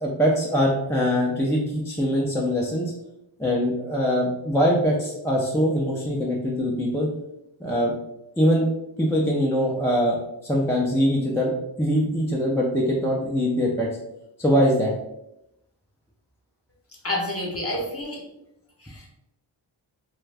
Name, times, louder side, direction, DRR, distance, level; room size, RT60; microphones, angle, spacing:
voice 1, 0.0-2.9 3.4-7.1 7.6-7.9 8.4-8.7 9.0-11.5 11.8-13.9 14.4-14.9, equal, 5° left, -4 dB, 0.5 m, -22 dB
voice 2, 17.0-18.2 18.8-19.1, left 1 dB, 30° left, -2 dB, 1.0 m, -29 dB
2.5 x 2.3 x 3.2 m, 0.86 s
cardioid pair, 40°, 49 cm